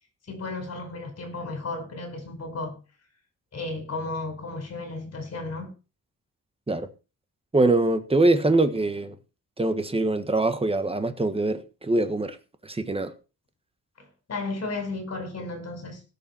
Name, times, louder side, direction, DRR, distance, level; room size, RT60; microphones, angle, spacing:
voice 1, 0.3-2.8 3.5-5.7 14.0-16.0, left 3 dB, 55° left, 4.7 m, -34 dB
voice 2, 7.5-9.1 9.6-12.4 12.6-13.1, right 2 dB, 20° right, 1.4 m, -23 dB
17.5 x 6.7 x 4.5 m
wide cardioid pair, 135°, 31 cm